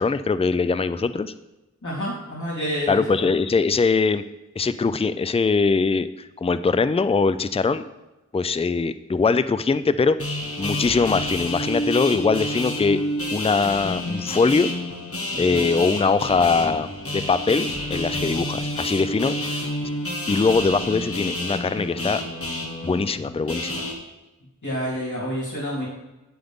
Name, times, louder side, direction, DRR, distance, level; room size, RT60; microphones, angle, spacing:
voice 1, 0.0-1.3 2.9-4.2 4.6-7.8 8.3-10.2 10.6-13.0 13.3-14.7 15.4-19.3 20.3-22.2 22.8-23.8, left 4 dB, 20° left, 13 dB, 0.4 m, -22 dB
voice 2, 1.8-3.3 15.3-15.6 24.6-25.9, equal, 80° left, -6 dB, 3.4 m, -29 dB
sound 1, 10.2-23.9, left 1 dB, 50° left, 1.5 m, -29 dB
9.4 x 7.7 x 3.6 m, 1.0 s
wide cardioid pair, 50°, 30 cm